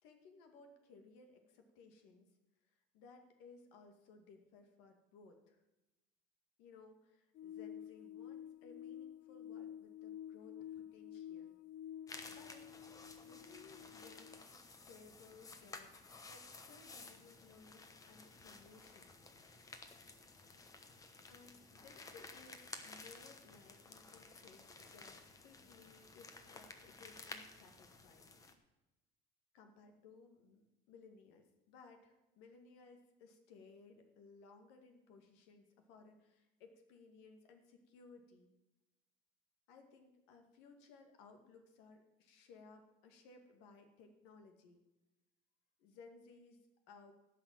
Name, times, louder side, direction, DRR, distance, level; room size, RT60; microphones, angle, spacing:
voice 1, 0.0-2.3 2.6-5.6 6.6-11.5 12.3-12.8 13.2-19.1 21.3-28.3 29.5-38.5 39.7-44.8 45.8-47.1, left 4 dB, 90° left, 5 dB, 2.2 m, -61 dB
sound 1, 7.4-14.4, left 10 dB, 45° left, 0.4 m, -50 dB
sound 2, 12.1-28.5, left 3 dB, 20° left, 1.0 m, -54 dB
15.5 x 5.9 x 7.6 m, 1.0 s
cardioid pair, 160°, 18 cm